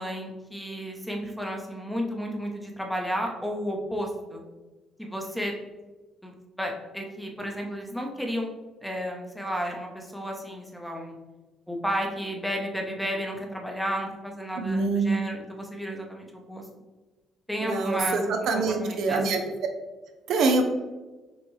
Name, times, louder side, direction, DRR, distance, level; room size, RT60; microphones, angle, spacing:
voice 1, 0.0-4.4 5.0-5.5 6.2-8.5 8.8-11.1 11.7-16.6 17.5-19.3, equal, ahead, 1 dB, 0.7 m, -32 dB
voice 2, 14.6-15.1 17.6-19.4 20.3-20.6, right 3 dB, 75° right, 5 dB, 0.5 m, -25 dB
6.1 x 2.2 x 3.1 m, 1.2 s
cardioid pair, 100°, 0 cm